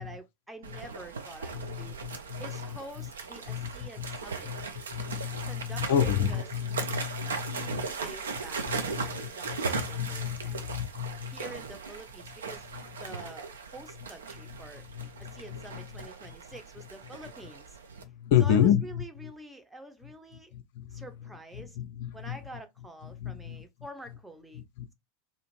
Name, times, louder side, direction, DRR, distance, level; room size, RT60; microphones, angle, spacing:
voice 1, 0.0-2.0 2.4-4.5 5.4-6.5 7.2-10.6 11.3-12.7 12.9-14.8 15.2-17.8 18.4-20.5 20.9-21.8 22.1-24.6, right 1 dB, 5° right, 0.5 m, -47 dB
sound 1, 0.6-18.0, right 4 dB, 70° right, 0.4 m, -38 dB
voice 2, 1.5-2.6 3.5-4.2 4.4-4.7 4.9-7.9 8.7-9.2 9.5-11.4 14.9-15.8 16.3-16.4 18.0-19.3 20.5-21.0 21.6-22.4 23.2-23.6 24.6-24.9, left 9 dB, 55° left, 0.3 m, -31 dB
2.5 x 2.4 x 2.9 m
figure-of-eight pair, 80°, 0 cm